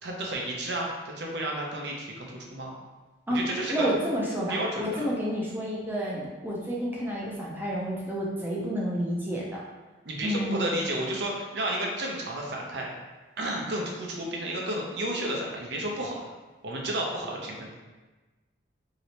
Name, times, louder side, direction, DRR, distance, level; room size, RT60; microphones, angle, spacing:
voice 1, 0.0-2.7 3.3-3.9 4.5-5.0 10.0-12.9 13.4-16.2 16.6-17.7, right 1 dB, 60° right, -1 dB, 0.6 m, -32 dB
voice 2, 3.7-9.6 10.2-10.6, equal, 10° right, -5 dB, 0.5 m, -30 dB
3.1 x 2.8 x 2.8 m, 1.2 s
head